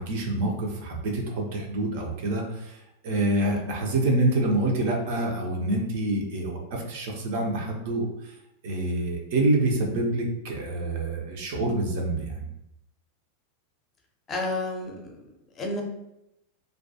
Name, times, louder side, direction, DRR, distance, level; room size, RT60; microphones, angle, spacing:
voice 1, 0.0-8.3 8.6-12.5, right 2 dB, 50° right, 1 dB, 0.5 m, -27 dB
voice 2, 3.5-3.9 14.3-15.3 15.6-15.8, left 2 dB, 25° left, 2 dB, 0.5 m, -31 dB
2.2 x 2.2 x 2.6 m, 0.85 s
figure-of-eight pair, 90°, 0 cm